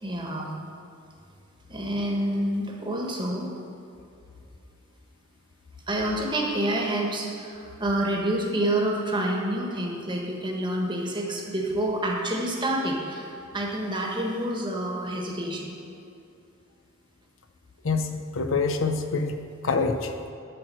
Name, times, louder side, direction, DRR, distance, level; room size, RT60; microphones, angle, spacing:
voice 1, 0.0-0.5 1.7-3.5 5.9-15.8, right 1 dB, 25° right, -1 dB, 1.4 m, -28 dB
voice 2, 17.8-19.4 19.6-20.1, left 4 dB, 70° left, 7 dB, 0.7 m, -26 dB
12.0 x 4.6 x 7.5 m, 2.6 s
head